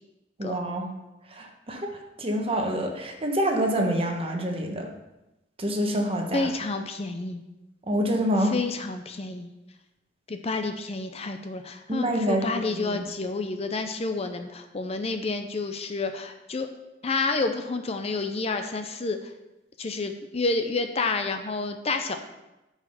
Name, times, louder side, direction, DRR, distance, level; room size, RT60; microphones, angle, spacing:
voice 1, 0.4-0.9 1.3-1.9 2.2-4.9 5.6-6.5 7.9-8.6 11.9-13.0, equal, 30° right, 2 dB, 1.2 m, -27 dB
voice 2, 6.3-7.4 8.5-9.5 10.3-16.7 17.0-19.3 19.8-22.2, left 3 dB, 35° left, 7 dB, 0.6 m, -29 dB
9.2 x 4.9 x 5.4 m, 0.97 s
head